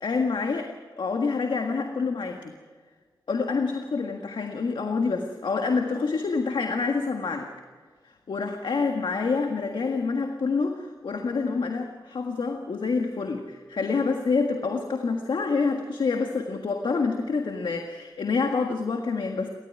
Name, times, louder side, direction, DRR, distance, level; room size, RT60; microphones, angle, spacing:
voice 1, 0.0-2.5 3.3-7.5 8.0-19.5, left 4 dB, 80° left, 4 dB, 1.7 m, -27 dB
30.0 x 13.5 x 9.6 m, 1.5 s
cardioid pair, 65°, 8 cm